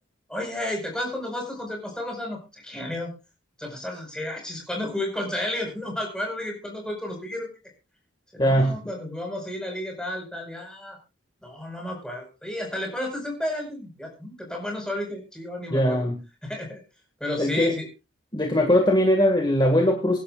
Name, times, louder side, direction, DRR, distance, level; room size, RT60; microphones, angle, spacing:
voice 1, 0.3-3.1 3.6-7.5 8.3-11.0 11.4-16.0 16.4-16.8 17.2-17.9, left 1 dB, 5° left, 1 dB, 5.0 m, -32 dB
voice 2, 8.4-8.8 15.7-16.2 17.4-17.7 18.3-20.2, equal, 20° left, 1 dB, 2.0 m, -20 dB
24.5 x 11.5 x 2.5 m, 0.29 s
head